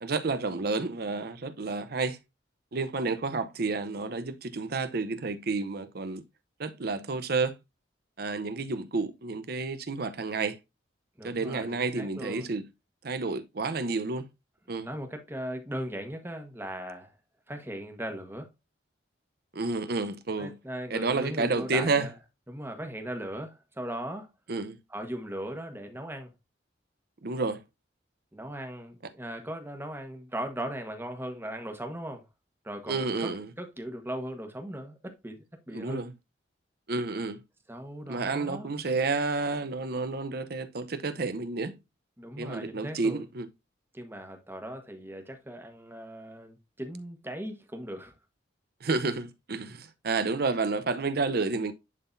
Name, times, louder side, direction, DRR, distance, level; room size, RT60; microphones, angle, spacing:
voice 1, 0.0-2.2 2.7-6.2 6.6-7.6 8.2-10.6 11.2-12.6 13.0-14.3 14.7-14.9 19.5-20.5 20.9-22.1 24.5-24.8 27.2-27.6 32.9-33.5 35.7-36.1 36.9-37.4 38.1-41.8 42.4-43.5 48.8-51.7, right 3 dB, 55° right, 0.7 m, -30 dB
voice 2, 11.2-12.5 14.8-17.1 17.5-18.5 20.4-22.1 22.5-24.3 24.9-26.3 28.3-32.2 32.6-36.1 37.7-38.7 42.2-43.2 43.9-48.1, right 1 dB, 10° right, 1.3 m, -38 dB
11.0 x 3.9 x 2.6 m
head